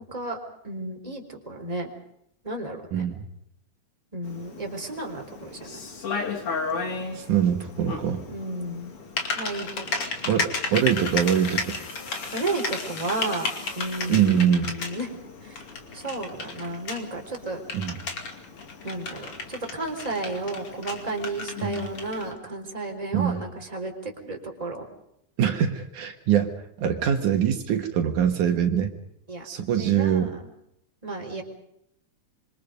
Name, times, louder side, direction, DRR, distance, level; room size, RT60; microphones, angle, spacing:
voice 1, 0.6-1.9 2.4-3.0 4.1-5.8 8.3-8.9 9.3-10.1 12.3-13.5 13.7-15.1 15.4-15.6 15.9-17.6 18.8-24.8 29.3-29.5 29.8-30.4 31.0-31.4, right 2 dB, 10° right, 2 dB, 4.0 m, -33 dB
voice 2, 2.9-3.3 7.1-8.2 10.3-11.8 14.1-14.7 17.7-18.0 23.1-23.4 25.4-28.9 29.4-30.3, right 9 dB, 75° right, 5 dB, 3.0 m, -23 dB
Typing, 4.2-22.3, left 4 dB, 45° left, 3.4 m, -34 dB
sound 1, 10.7-14.6 15.8-16.0, left 4 dB, 90° left, 5.2 m, -43 dB
26.5 x 25.0 x 5.3 m, 0.75 s
omnidirectional pair, 3.6 m